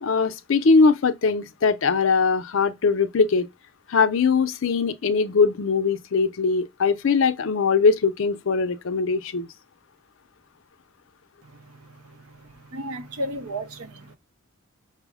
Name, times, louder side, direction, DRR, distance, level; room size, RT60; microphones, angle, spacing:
voice 1, 0.0-3.5 3.9-9.5, left 4 dB, 60° left, 0.5 m, -21 dB
voice 2, 11.4-14.2, right 1 dB, 80° right, 0.7 m, -35 dB
5.5 x 2.0 x 3.5 m
head